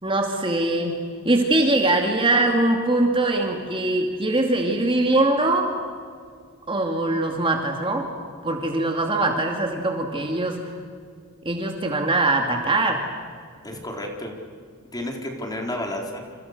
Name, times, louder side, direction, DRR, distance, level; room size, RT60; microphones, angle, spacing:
voice 1, 0.0-1.0 1.2-5.7 6.7-8.1 8.4-10.7 11.4-13.0, right 2 dB, 25° right, 3 dB, 2.4 m, -22 dB
voice 2, 13.6-14.4 14.9-16.2, left 1 dB, 20° left, 1 dB, 4.1 m, -31 dB
28.5 x 28.0 x 6.7 m, 2.1 s
head